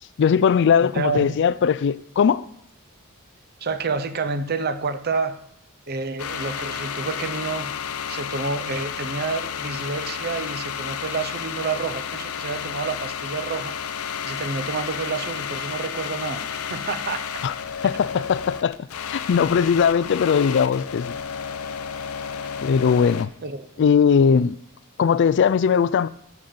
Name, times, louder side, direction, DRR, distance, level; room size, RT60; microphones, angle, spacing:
voice 1, 0.2-2.4 17.4-17.5 17.8-18.8 19.1-21.1 22.6-23.3 23.8-24.6 25.0-26.1, left 6 dB, 55° left, 0.3 m, -19 dB
voice 2, 0.8-1.4 3.6-5.4 5.9-7.7 8.1-13.8 14.2-17.4 17.8-18.0 23.4-23.7, right 4 dB, 50° right, 0.8 m, -29 dB
sound 1, 6.2-23.2, left 7 dB, 85° left, 0.7 m, -32 dB
14.5 x 5.3 x 7.0 m
head